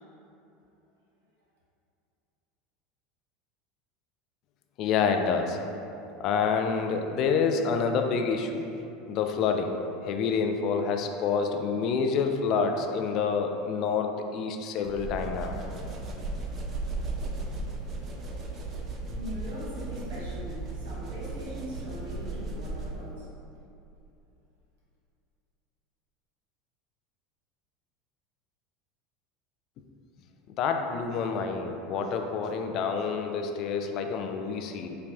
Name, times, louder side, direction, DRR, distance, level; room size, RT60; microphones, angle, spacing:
voice 1, 4.8-5.6 6.2-8.7 9.1-9.8 10.0-15.6 30.6-35.0, left 5 dB, 50° left, 4 dB, 0.3 m, -28 dB
sound 1, 14.8-23.1, right 2 dB, 40° right, 0.5 m, -36 dB
voice 2, 19.2-23.3, equal, 75° right, -7 dB, 1.2 m, -41 dB
5.4 x 2.3 x 2.6 m, 2.7 s
hypercardioid pair, 85°, 0 cm